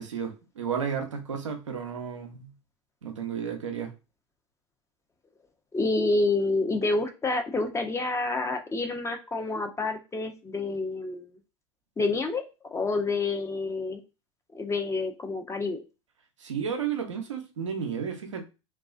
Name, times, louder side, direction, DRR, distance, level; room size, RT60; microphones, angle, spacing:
voice 1, 0.0-2.5 3.0-3.9 16.4-18.4, right 7 dB, 90° right, 4 dB, 0.5 m, -32 dB
voice 2, 5.7-11.4 12.0-12.4 12.7-14.0 14.5-15.8, left 3 dB, 20° left, 5 dB, 0.5 m, -28 dB
2.3 x 2.3 x 2.3 m, 0.29 s
hypercardioid pair, 75°, 15 cm